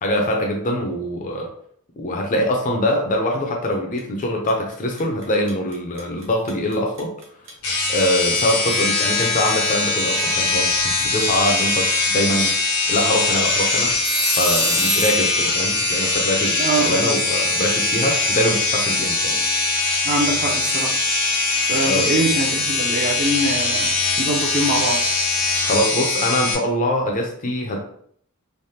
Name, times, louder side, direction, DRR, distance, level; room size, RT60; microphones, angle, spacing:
voice 1, 0.0-1.5 2.0-7.1 7.9-11.9 12.1-13.9 14.3-19.4 21.8-22.1 25.6-27.8, left 1 dB, 35° left, 1 dB, 0.5 m, -23 dB
sound 1, 4.0-4.2 4.5-15.2, right 3 dB, 60° right, 0.9 m, -27 dB
sound 2, 7.6-26.6, left 3 dB, 85° left, 0.9 m, -21 dB
voice 2, 16.6-17.2 20.0-21.0 21.7-23.9 24.2-25.0, right 2 dB, 40° right, 1 dB, 0.5 m, -23 dB
3.2 x 2.0 x 2.8 m, 0.63 s
head